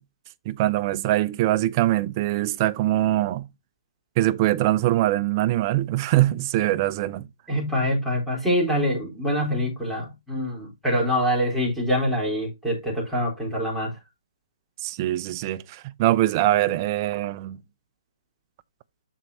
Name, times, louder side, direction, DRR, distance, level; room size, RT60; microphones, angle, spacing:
voice 1, 0.5-3.5 4.2-7.3 14.8-17.6, right 15 dB, 30° right, 0.6 m, -23 dB
voice 2, 7.5-13.9, equal, ahead, 3.8 m, -25 dB
13.0 x 4.6 x 2.7 m
hypercardioid pair, 145°, 3 cm